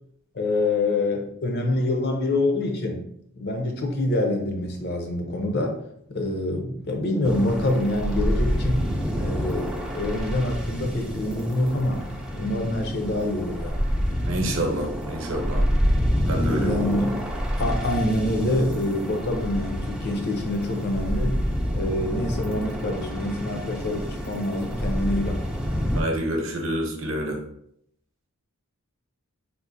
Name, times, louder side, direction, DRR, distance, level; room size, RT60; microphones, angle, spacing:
voice 1, 0.3-3.1 3.4-5.8 6.1-8.8 9.1-12.0 12.3-13.8 16.4-17.2 17.6-21.4 21.8-25.4, left 1 dB, 45° left, 4 dB, 0.5 m, -26 dB
sound 1, 7.2-26.0, equal, 5° right, 0.3 m, -28 dB
voice 2, 14.2-15.6 16.3-16.8 25.9-27.4, right 1 dB, 60° right, 1 dB, 0.7 m, -27 dB
3.7 x 2.5 x 2.6 m, 0.72 s
head